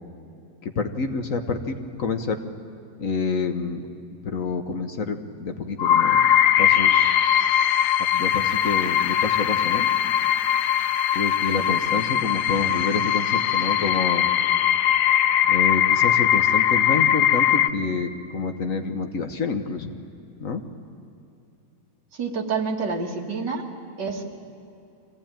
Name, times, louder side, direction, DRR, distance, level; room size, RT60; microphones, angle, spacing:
voice 1, 0.6-2.4 3.0-3.9 4.2-6.3 6.6-7.2 8.1-9.9 11.1-14.3 15.5-19.9 20.4-20.6, left 4 dB, 50° left, 6 dB, 1.4 m, -28 dB
sound 1, 5.8-17.7, left 10 dB, 70° left, 1.3 m, -20 dB
voice 2, 22.1-23.6 24.0-24.3, right 4 dB, 75° right, 2 dB, 2.4 m, -28 dB
24.5 x 17.0 x 8.9 m, 2.6 s
omnidirectional pair, 1.9 m